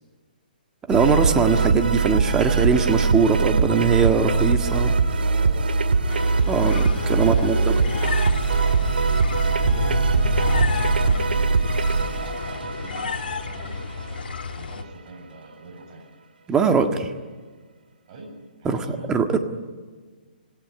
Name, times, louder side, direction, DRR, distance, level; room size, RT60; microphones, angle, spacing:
voice 1, 0.9-4.9 6.5-7.6 16.5-17.1 18.7-19.4, right 5 dB, 10° right, 5 dB, 1.7 m, -21 dB
sound 1, 0.9-14.0, right 4 dB, 80° right, 2.2 m, -22 dB
voice 2, 4.0-16.1 18.0-19.1, right 2 dB, 40° right, 1 dB, 7.9 m, -42 dB
sound 2, 6.1-14.8, left 5 dB, 70° left, 1.9 m, -30 dB
26.5 x 19.0 x 9.7 m, 1.4 s
hypercardioid pair, 150°, 5 cm